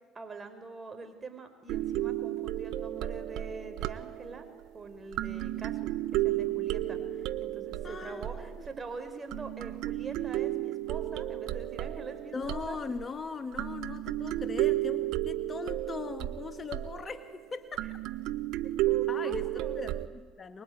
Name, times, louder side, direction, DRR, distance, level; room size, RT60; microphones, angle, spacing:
voice 1, 0.2-4.5 4.7-12.8 18.9-19.8, right 3 dB, 25° right, 7 dB, 5.1 m, -44 dB
sound 1, 1.7-4.6 5.1-8.9 9.3-13.1 13.5-17.5 17.7-20.1, right 15 dB, 65° right, 1.1 m, -33 dB
voice 2, 7.8-8.7 12.3-17.9 19.1-20.6, left 5 dB, 35° left, 10 dB, 1.6 m, -40 dB
25.0 x 22.0 x 9.6 m, 1.4 s
hypercardioid pair, 70°, 0 cm